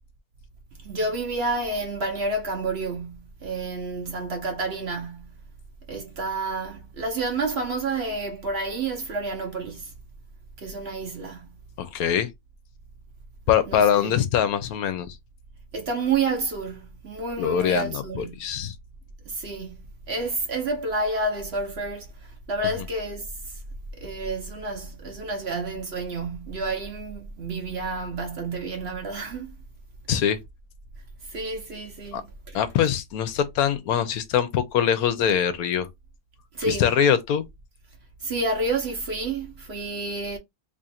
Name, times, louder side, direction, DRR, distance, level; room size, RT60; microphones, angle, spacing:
voice 1, 0.7-5.3 5.9-9.9 10.6-11.5 13.7-14.2 15.7-18.4 19.2-23.6 24.0-29.6 31.2-32.6 36.5-36.9 38.2-40.4, right 3 dB, 50° right, 1.0 m, -30 dB
voice 2, 11.8-12.3 13.5-15.2 17.4-18.7 30.1-30.4 32.1-32.2 32.5-35.9 36.7-37.5, left 9 dB, 75° left, 1.0 m, -23 dB
3.0 x 2.5 x 4.1 m
omnidirectional pair, 1.6 m